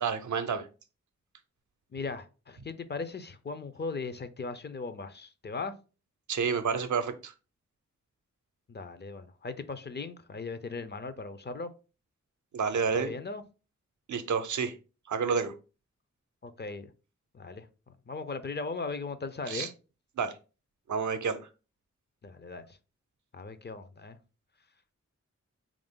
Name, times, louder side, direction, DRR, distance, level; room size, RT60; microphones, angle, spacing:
voice 1, 0.0-0.7 6.3-7.3 12.5-13.1 14.1-14.7 15.1-15.5 19.5-19.7 20.2-20.3 20.9-21.4, right 6 dB, 75° right, 0.6 m, -29 dB
voice 2, 1.9-5.7 8.7-11.7 12.8-13.4 16.4-16.9 17.3-17.7 18.1-19.7 22.2-22.6 23.3-24.2, left 4 dB, 35° left, 0.4 m, -38 dB
3.4 x 2.5 x 3.6 m
cardioid pair, 60°, 29 cm